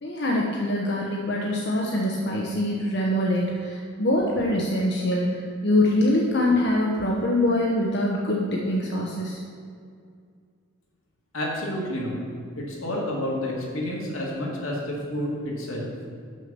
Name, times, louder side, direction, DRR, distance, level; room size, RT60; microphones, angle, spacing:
voice 1, 0.0-9.4, left 1 dB, 55° left, -2 dB, 0.8 m, -24 dB
voice 2, 11.3-12.2 12.5-15.9, left 1 dB, 85° left, -3 dB, 2.0 m, -29 dB
6.3 x 5.7 x 6.7 m, 2.2 s
head